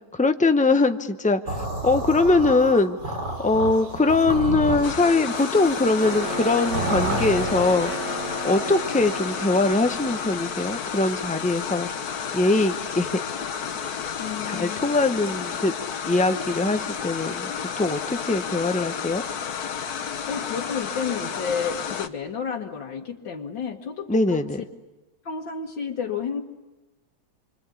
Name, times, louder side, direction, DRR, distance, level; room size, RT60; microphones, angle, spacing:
voice 1, 0.1-3.1 3.4-7.9 8.4-11.9 12.3-13.1 14.4-15.7 16.1-17.5 17.8-19.2 24.1-24.6, left 3 dB, 10° left, 8 dB, 0.3 m, -22 dB
sound 1, 1.5-7.8, right 2 dB, 60° right, 5.0 m, -30 dB
sound 2, 4.8-22.1, left 7 dB, 55° left, 1.5 m, -31 dB
sound 3, 6.0-10.9, right 1 dB, 35° right, 2.5 m, -33 dB
voice 2, 14.2-14.8 20.3-24.4 25.2-26.4, left 6 dB, 75° left, 0 dB, 2.1 m, -31 dB
27.5 x 25.0 x 8.4 m, 1.1 s
omnidirectional pair, 2.1 m